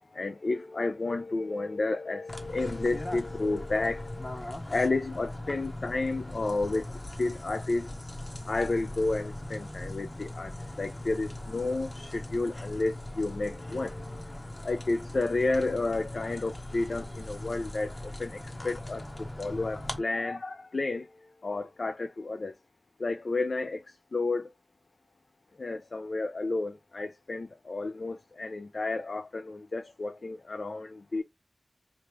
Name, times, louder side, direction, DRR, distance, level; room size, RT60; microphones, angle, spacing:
voice 1, 0.1-6.8 7.1-7.9 8.5-10.5 10.8-14.3 14.6-21.1 21.4-22.5 23.0-23.8 24.1-24.5 25.6-31.2, left 3 dB, 75° left, 0.4 m, -31 dB
sound 1, 2.3-20.0, left 1 dB, 35° left, 1.0 m, -40 dB
3.3 x 2.4 x 4.4 m
wide cardioid pair, 50°, 0 cm